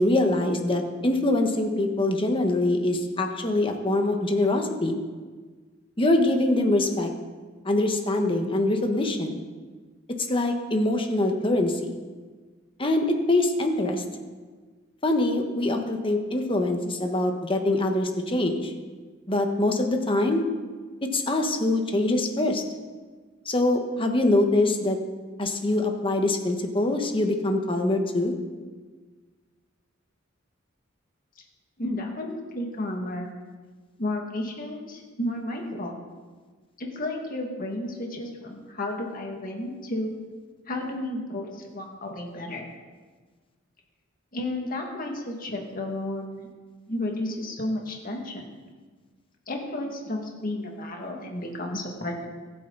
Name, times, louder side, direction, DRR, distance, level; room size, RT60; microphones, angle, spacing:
voice 1, 0.0-5.0 6.0-7.1 7.6-9.4 10.3-12.0 12.8-14.0 15.0-18.7 19.3-20.4 21.1-22.6 23.4-25.0 25.4-28.3, left 2 dB, 25° left, 4 dB, 1.4 m, -24 dB
voice 2, 31.8-33.3 34.0-35.9 36.8-40.1 40.7-42.6 44.3-46.5 46.9-48.4 49.5-52.3, left 1 dB, 45° left, 1 dB, 2.1 m, -32 dB
24.0 x 9.0 x 4.1 m, 1.4 s
head